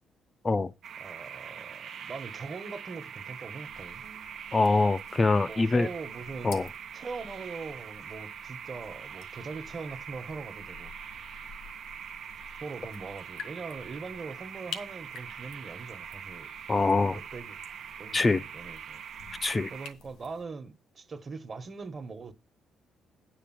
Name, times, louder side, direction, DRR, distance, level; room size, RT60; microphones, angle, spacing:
sound 1, 0.8-19.9, right 8 dB, 65° right, 0.7 m, -43 dB
voice 1, 1.0-4.0 5.5-6.6 6.9-10.9 12.6-17.6 18.0-19.0 19.7-22.3, right 4 dB, 40° right, 1.3 m, -41 dB
sound 2, 3.6-20.4, left 6 dB, 90° left, 1.8 m, -50 dB
voice 2, 4.5-5.9 6.4-6.7 16.7-17.2 18.1-18.4 19.4-19.7, left 3 dB, 25° left, 0.5 m, -24 dB
9.6 x 5.1 x 7.5 m
cardioid pair, 90°, 0 cm